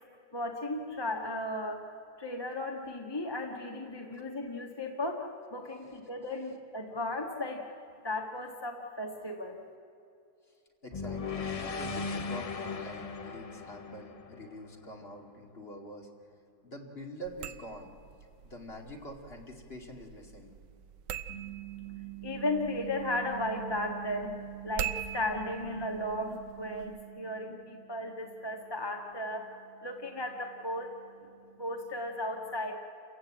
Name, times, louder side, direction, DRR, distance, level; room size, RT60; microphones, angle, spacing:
voice 1, 0.3-1.9 2.2-7.6 8.0-9.6 21.3-30.9 31.2-31.3 31.6-32.7, left 1 dB, 15° left, 2 dB, 1.6 m, -35 dB
voice 2, 10.8-16.1 16.6-17.9 18.4-20.5, equal, 35° left, 2 dB, 2.5 m, -45 dB
sound 1, 10.9-15.2, left 5 dB, 70° left, 0.3 m, -38 dB
sound 2, 17.2-27.0, right 9 dB, 80° right, 1.5 m, -44 dB
28.5 x 16.0 x 8.7 m, 2.6 s
omnidirectional pair, 1.9 m